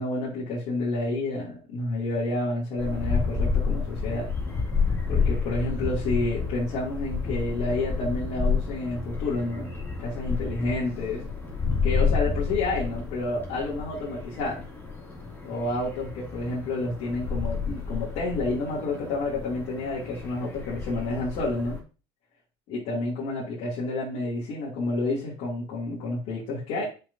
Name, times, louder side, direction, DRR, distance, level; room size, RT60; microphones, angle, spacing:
voice 1, 0.0-4.3 5.1-9.7 10.0-11.2 11.8-14.7 15.4-21.8 22.7-26.8, left 2 dB, 65° left, -7 dB, 2.8 m, -29 dB
sound 1, 2.8-21.8, left 5 dB, 15° left, 2.7 m, -30 dB
7.6 x 5.8 x 2.8 m, 0.34 s
supercardioid pair, 90°, 14 cm